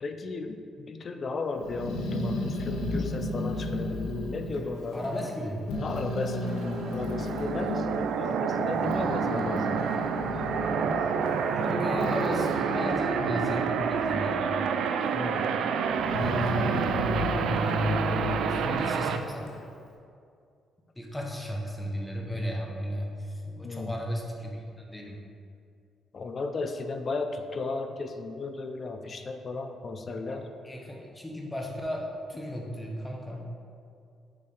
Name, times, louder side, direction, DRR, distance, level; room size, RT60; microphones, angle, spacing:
voice 1, 0.0-5.1 5.8-6.4 6.9-9.8 15.1-15.5 23.6-24.0 26.1-30.5, left 3 dB, 45° left, 7 dB, 0.5 m, -35 dB
Growling, 1.6-5.4 5.7-8.0 8.6-14.4 14.7-15.4 15.9-19.7, left 2 dB, 85° left, 0.7 m, -34 dB
voice 2, 4.9-5.8 11.6-14.5 16.1-19.5 21.0-24.6 24.9-25.2 30.1-33.5, equal, 10° left, 0 dB, 1.0 m, -35 dB
sound 1, 6.4-19.2, right 6 dB, 75° right, 0.3 m, -28 dB
7.0 x 3.3 x 4.9 m, 2.4 s
cardioid pair, 90°, 0 cm